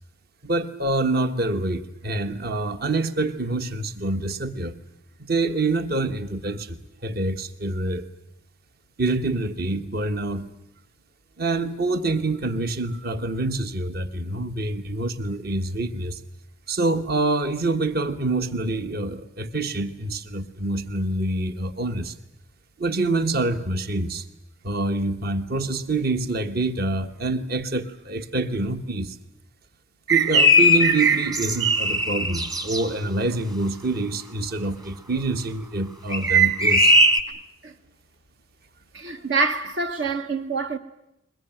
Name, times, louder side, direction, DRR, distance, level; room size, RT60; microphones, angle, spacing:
voice 1, 0.4-4.8 5.2-8.1 9.0-10.5 11.4-16.2 16.7-22.1 22.8-24.2 24.6-29.2 30.1-36.9, right 2 dB, 50° right, 1.3 m, -26 dB
sound 1, 30.1-32.8 36.1-37.2, equal, 20° right, 1.3 m, -19 dB
voice 2, 38.9-40.8, right 4 dB, 70° right, 1.1 m, -26 dB
22.0 x 21.5 x 9.0 m
head